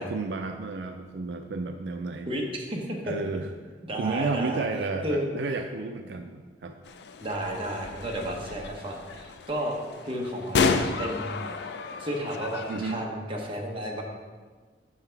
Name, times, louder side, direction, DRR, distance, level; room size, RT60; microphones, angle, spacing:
voice 1, 0.0-2.3 3.0-3.5 4.0-6.8 12.7-13.0, right 4 dB, 75° right, 6 dB, 0.4 m, -32 dB
voice 2, 2.3-3.1 3.8-4.6 5.0-5.3 7.2-9.8 10.0-11.7 12.0-14.0, equal, 30° right, 0 dB, 1.0 m, -32 dB
sound 1, 6.8-13.0, left 4 dB, 70° left, 0.4 m, -31 dB
5.7 x 5.5 x 4.6 m, 1.4 s
head